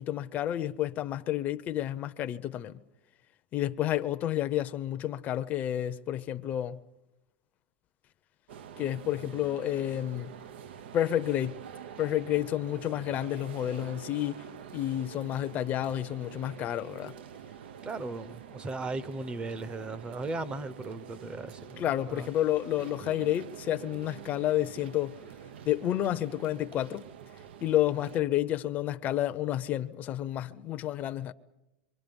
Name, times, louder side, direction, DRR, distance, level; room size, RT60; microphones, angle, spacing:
voice 1, 0.0-2.8 3.5-6.8 8.8-10.4 10.9-11.6 12.0-14.4 14.7-17.1 21.8-25.1 25.7-27.1 27.6-31.3, left 12 dB, 30° left, 0.7 m, -30 dB
sound 1, 8.5-28.2, right 8 dB, 85° right, 0.9 m, -46 dB
voice 2, 17.8-21.8 22.1-22.3, right 3 dB, 20° right, 0.8 m, -37 dB
27.0 x 24.0 x 5.3 m
supercardioid pair, 150°, 6 cm